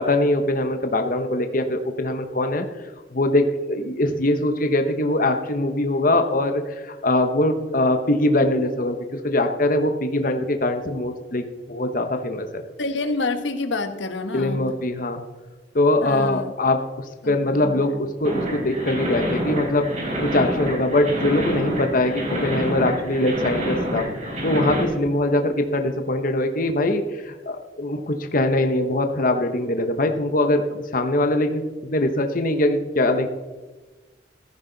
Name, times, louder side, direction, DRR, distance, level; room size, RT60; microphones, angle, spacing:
voice 1, 0.0-2.7 3.1-6.6 7.0-9.0 9.2-12.5 14.3-15.2 15.7-16.8 17.3-19.9 20.3-30.6 30.9-33.3, left 1 dB, 50° left, 6 dB, 1.0 m, -22 dB
voice 2, 12.8-14.6 16.0-16.5 17.2-18.0, left 3 dB, 90° left, 7 dB, 1.3 m, -28 dB
sound 1, 18.2-24.8, equal, 40° right, 4.1 m, -27 dB
15.0 x 14.5 x 4.0 m, 1.2 s
head